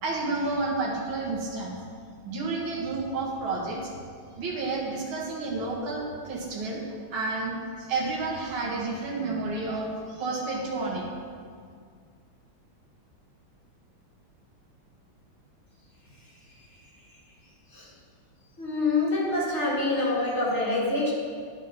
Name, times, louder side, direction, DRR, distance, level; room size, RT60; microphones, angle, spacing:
voice 1, 0.0-1.8 2.2-3.9 4.4-6.8 7.1-11.1, right 3 dB, 75° right, -3 dB, 2.2 m, -30 dB
voice 2, 18.6-21.1, left 2 dB, 35° left, -5 dB, 2.0 m, -26 dB
11.0 x 4.6 x 5.5 m, 2.1 s
omnidirectional pair, 2.3 m